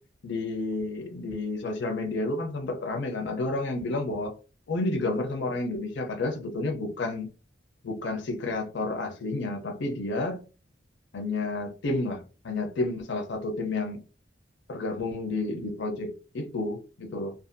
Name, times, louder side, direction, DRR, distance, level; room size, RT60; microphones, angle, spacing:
voice 1, 0.2-4.3 4.7-7.3 7.8-10.4 11.1-14.0 14.7-17.3, left 2 dB, 65° left, 0.5 m, -30 dB
2.5 x 2.2 x 2.5 m
head